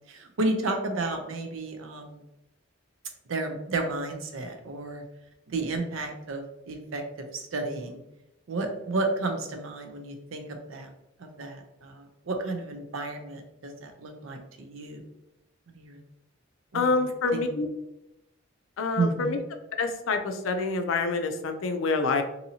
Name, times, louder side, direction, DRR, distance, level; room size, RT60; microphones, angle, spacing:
voice 1, 0.1-2.2 3.3-5.0 5.5-8.0 8.5-10.9 11.2-15.0 15.7-16.0 16.7-16.9 17.3-17.4 19.0-19.4, right 2 dB, 75° right, 4 dB, 0.5 m, -32 dB
voice 2, 16.7-17.7 18.8-19.4 19.8-22.2, left 3 dB, 75° left, 7 dB, 0.4 m, -27 dB
2.7 x 2.7 x 2.7 m, 0.89 s
head